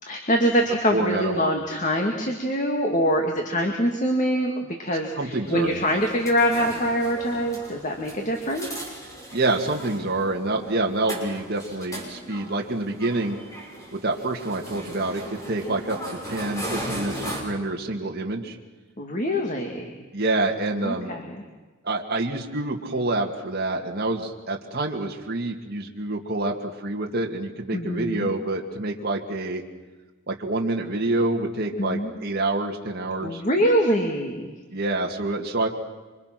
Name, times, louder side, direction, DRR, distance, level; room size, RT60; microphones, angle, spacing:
voice 1, 0.0-4.5 4.8-8.7 19.0-19.9 20.8-21.4 27.7-28.3 31.8-32.1 33.2-34.5, equal, 35° left, 2 dB, 2.2 m, -24 dB
voice 2, 0.9-1.5 5.2-5.7 9.3-13.4 13.9-18.6 20.1-21.1 21.8-29.6 30.3-33.4 34.7-35.7, right 2 dB, 45° right, 0 dB, 2.3 m, -27 dB
sound 1, 5.4-17.4, right 1 dB, 15° left, 5.8 m, -37 dB
27.5 x 26.0 x 6.1 m, 1.3 s
head